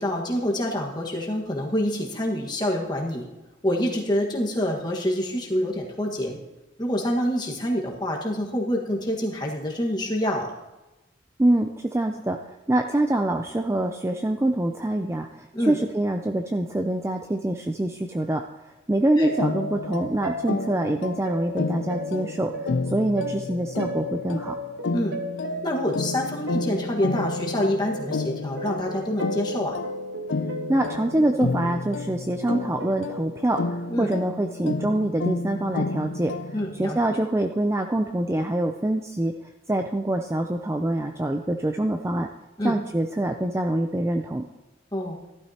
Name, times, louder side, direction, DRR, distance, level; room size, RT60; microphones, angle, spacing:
voice 1, 0.0-3.2 3.6-6.4 6.8-10.5 15.5-15.8 19.2-19.3 24.9-25.1 25.6-29.7 33.9-34.1 36.5-37.2 42.6-42.7 44.9-45.2, left 1 dB, 20° left, -1 dB, 1.5 m, -26 dB
voice 2, 11.4-12.4 12.7-15.3 15.7-18.4 18.9-22.5 22.9-24.6 30.7-33.6 34.0-36.3 36.8-39.3 39.7-42.3 42.6-44.5, right 1 dB, 15° right, 5 dB, 0.4 m, -25 dB
sound 1, 19.1-33.9 34.4-35.0 35.3-35.5 36.5-36.7, right 1 dB, 70° right, 1.3 m, -36 dB
sound 2, 19.4-36.8, left 3 dB, 80° left, 0.5 m, -31 dB
15.0 x 12.0 x 2.9 m, 1.1 s
head